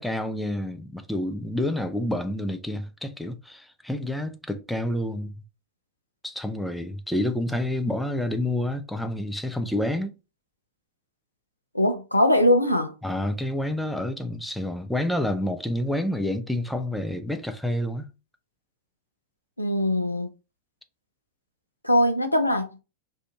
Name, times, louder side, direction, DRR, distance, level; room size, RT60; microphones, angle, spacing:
voice 1, 0.0-5.3 6.2-10.1 13.0-18.1, left 1 dB, 5° left, 0.4 m, -28 dB
voice 2, 11.7-12.9 19.6-20.3 21.8-22.8, left 1 dB, 85° left, 0.5 m, -21 dB
2.7 x 2.5 x 3.3 m
figure-of-eight pair, 90°, 0 cm